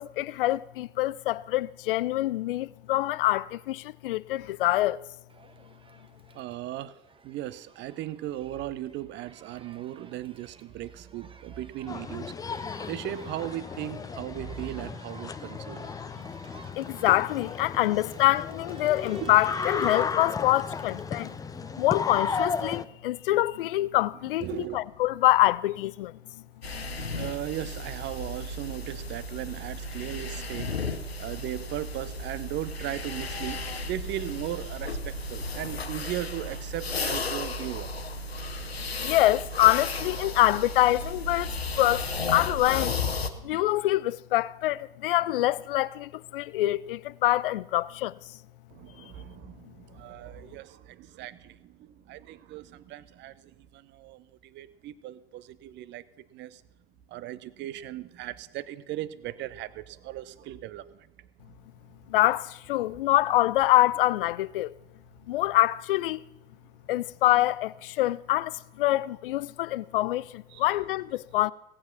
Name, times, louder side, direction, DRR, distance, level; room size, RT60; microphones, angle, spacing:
voice 1, 0.0-5.0 16.8-21.4 21.8-24.4 24.7-26.2 26.7-26.8 39.0-43.0 43.4-48.1 62.1-64.7 65.3-66.2 66.9-71.5, left 16 dB, 65° left, 0.4 m, -25 dB
Crowd, 5.3-22.4, right 4 dB, 15° right, 1.3 m, -53 dB
voice 2, 6.3-6.9 7.2-15.9 19.2-19.3 24.4-24.8 27.0-30.8 31.2-38.0 38.8-39.0 48.7-56.6 57.1-61.3 62.9-63.0 70.5-70.6, right 13 dB, 35° right, 0.8 m, -37 dB
sound 1, 11.9-22.8, left 5 dB, 10° left, 0.5 m, -34 dB
sound 2, 26.6-43.3, left 3 dB, 85° left, 1.0 m, -34 dB
17.5 x 8.7 x 5.9 m
figure-of-eight pair, 70°, 30 cm